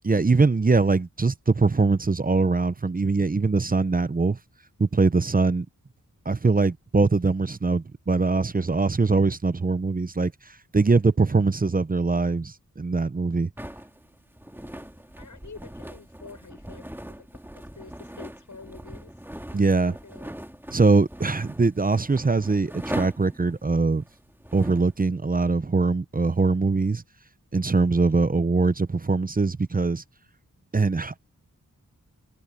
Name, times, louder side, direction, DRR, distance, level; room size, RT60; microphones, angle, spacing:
voice 1, 0.0-4.4 4.8-5.7 6.3-13.5 19.5-19.9 20.7-24.0 24.5-27.0 27.5-30.0 30.7-31.2, right 3 dB, 25° right, 0.6 m, -22 dB
sound 1, 13.6-24.9, right 1 dB, 5° right, 2.2 m, -40 dB
voice 2, 14.5-17.3 17.5-19.2 19.5-20.4, left 4 dB, 65° left, 6.9 m, -48 dB
wide cardioid pair, 80°, 33 cm